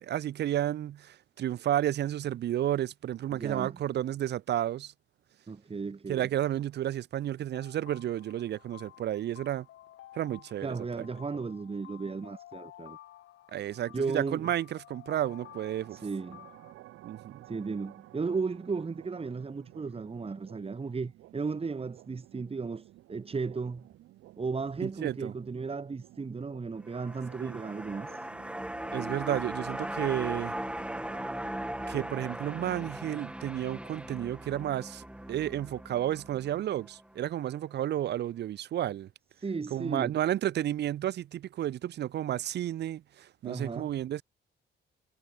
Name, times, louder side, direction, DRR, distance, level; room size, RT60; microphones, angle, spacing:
voice 1, 0.0-4.9 6.1-9.7 10.1-11.1 13.5-16.0 17.0-17.4 24.8-25.3 27.4-27.6 28.9-30.5 31.9-35.0 35.3-39.1 39.7-44.2, right 12 dB, 60° right, 0.6 m, -32 dB
voice 2, 3.3-3.8 5.5-6.3 10.6-13.0 13.9-14.5 15.9-16.5 17.5-23.9 24.4-28.3 39.4-40.1 43.4-43.9, right 4 dB, 30° right, 2.6 m, -35 dB
sound 1, 7.5-16.7, left 13 dB, 80° left, 3.9 m, -53 dB
sound 2, 15.2-32.9, right 16 dB, 90° right, 6.1 m, -54 dB
sound 3, 26.8-37.2 37.6-37.7, right 1 dB, 5° right, 2.8 m, -39 dB
cardioid pair, 90°, 20 cm